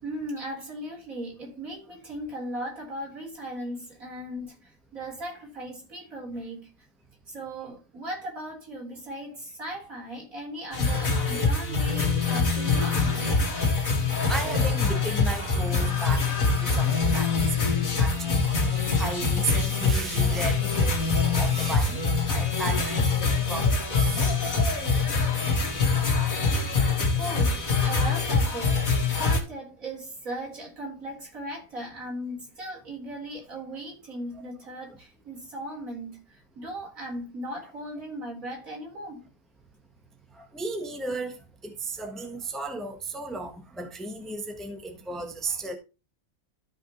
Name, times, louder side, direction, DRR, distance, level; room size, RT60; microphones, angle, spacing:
voice 1, 0.0-6.7 7.3-13.4 27.1-28.9 29.2-39.2, right 1 dB, 70° right, 4.7 m, -37 dB
sound 1, 10.7-29.4, left 4 dB, 75° left, 2.5 m, -24 dB
voice 2, 14.3-22.0 22.3-23.0 23.4-24.3 40.3-45.8, right 3 dB, ahead, 1.2 m, -35 dB
13.5 x 5.5 x 3.1 m
omnidirectional pair, 1.5 m